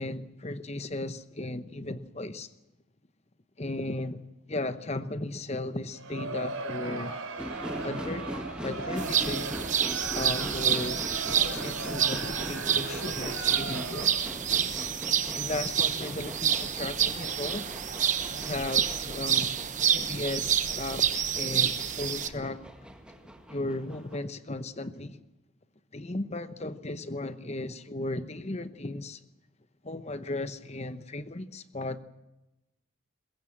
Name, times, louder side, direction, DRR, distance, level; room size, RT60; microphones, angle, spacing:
voice 1, 0.0-2.5 3.6-4.2 4.5-7.1 7.8-8.3 8.6-9.8 10.1-11.0 11.4-14.2 15.3-17.7 18.3-19.6 19.9-22.6 23.5-25.2 25.9-29.2 29.8-32.0, left 2 dB, 30° left, 12 dB, 0.9 m, -35 dB
Crowd, 5.9-14.4, right 3 dB, 80° right, 3.8 m, -38 dB
sound 1, 7.4-24.2, equal, 5° right, 1.7 m, -42 dB
sound 2, 9.0-22.3, right 8 dB, 35° right, 1.0 m, -28 dB
22.0 x 21.5 x 7.4 m, 0.97 s
head